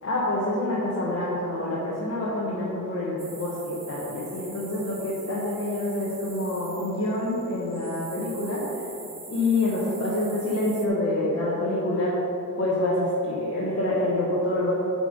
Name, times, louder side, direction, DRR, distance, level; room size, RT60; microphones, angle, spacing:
voice 1, 0.0-8.8 9.3-12.2 12.6-14.7, left 1 dB, 50° left, -7 dB, 1.2 m, -27 dB
sound 1, 3.2-10.9, right 3 dB, 20° right, 0.5 m, -44 dB
7.6 x 5.2 x 5.2 m, 3.0 s
wide cardioid pair, 165°, 32 cm